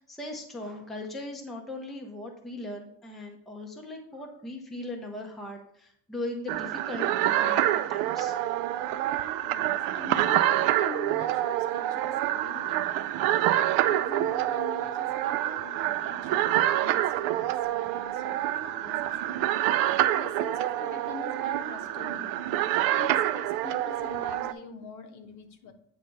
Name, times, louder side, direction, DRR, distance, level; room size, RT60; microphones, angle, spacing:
voice 1, 0.0-7.6 7.9-8.4, left 1 dB, ahead, 0 dB, 0.5 m, -39 dB
sound 1, 6.5-24.5, right 13 dB, 70° right, 0.5 m, -27 dB
voice 2, 9.4-13.3 13.8-19.7 20.1-25.7, left 6 dB, 50° left, 8 dB, 0.9 m, -45 dB
8.7 x 3.3 x 5.3 m, 0.66 s
cardioid pair, 170°, 36 cm